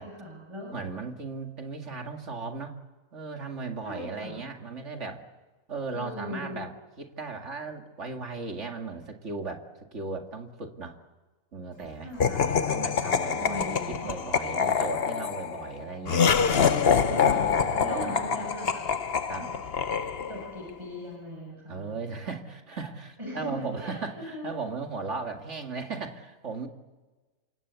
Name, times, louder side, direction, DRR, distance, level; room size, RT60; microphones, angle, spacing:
voice 1, 0.0-0.7 3.8-4.4 5.9-6.6 12.0-12.7 13.4-14.2 16.0-16.1 17.2-17.4 17.8-18.9 19.4-19.5 20.3-22.1 23.2-24.6, left 1 dB, 20° right, -1 dB, 6.6 m, -39 dB
voice 2, 0.7-2.8 3.1-5.3 5.7-11.0 11.5-16.3 17.1-18.4 19.3-19.5 21.7-26.7, right 4 dB, 60° right, 4 dB, 2.5 m, -37 dB
Laughter, 12.2-20.6, left 6 dB, 50° left, 1.2 m, -26 dB
27.0 x 24.5 x 8.3 m, 1.2 s
omnidirectional pair, 1.4 m